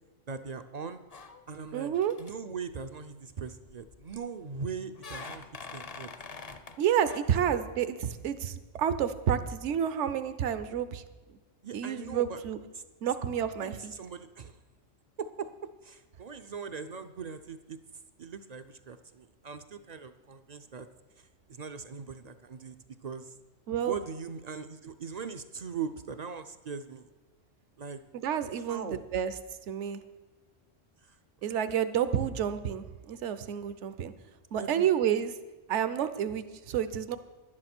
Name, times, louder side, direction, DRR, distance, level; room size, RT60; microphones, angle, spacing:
voice 1, 0.3-1.0 1.5-1.9 2.2-5.4 5.7-6.1 11.6-12.4 12.7-12.8 13.6-14.6 15.2-15.5 15.8-17.8 18.2-20.9 21.2-22.7 23.0-23.3 23.8-27.1 27.8-28.0 28.7-29.0 31.0-31.2 31.5-31.6 34.6-34.8, right 5 dB, 50° right, 10 dB, 0.5 m, -40 dB
sound 1, 1.1-1.7 1.9-2.3 3.7-4.2 5.0-6.8 7.1-7.2, left 4 dB, 40° left, 0.6 m, -44 dB
voice 2, 1.7-2.1 6.8-11.0 11.3-11.4 11.7-12.6 13.0-13.9 23.7-24.0 28.1-29.3 29.7-30.0 31.4-34.1 34.5-35.3 35.7-37.2, right 9 dB, 70° right, 12 dB, 1.0 m, -29 dB
11.5 x 9.9 x 6.0 m, 1.2 s
omnidirectional pair, 1.3 m